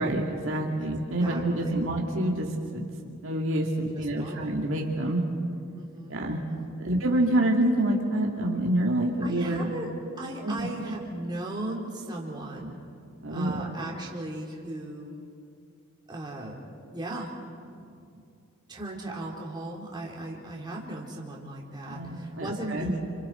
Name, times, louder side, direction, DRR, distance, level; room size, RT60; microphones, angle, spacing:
voice 1, 0.0-2.9 3.2-5.2 6.1-6.4 6.8-9.7 10.4-10.7 13.2-13.6 21.9-22.9, right 1 dB, 60° right, -1 dB, 2.3 m, -27 dB
voice 2, 1.2-1.8 3.9-4.5 5.7-6.2 6.5-6.9 9.2-9.9 10.2-12.8 13.3-15.1 16.1-16.6 16.9-18.2 18.7-23.0, right 1 dB, 20° right, -3 dB, 2.9 m, -37 dB
29.0 x 27.0 x 4.4 m, 2.4 s
head